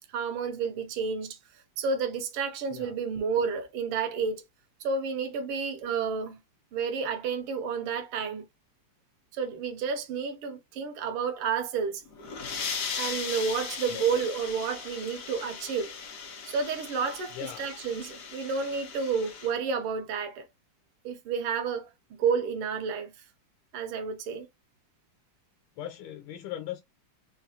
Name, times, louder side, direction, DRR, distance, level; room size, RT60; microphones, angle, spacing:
voice 1, 0.0-1.4 1.8-4.4 4.8-6.4 6.7-8.5 9.3-12.0 13.0-15.9 16.4-20.4 21.0-23.1 23.7-24.5, right 5 dB, 85° right, 1.7 m, -30 dB
sound 1, 12.1-19.5, left 6 dB, 55° left, 0.9 m, -38 dB
voice 2, 17.3-17.7 25.8-26.8, left 12 dB, 85° left, 1.5 m, -39 dB
4.0 x 2.4 x 2.7 m
omnidirectional pair, 2.4 m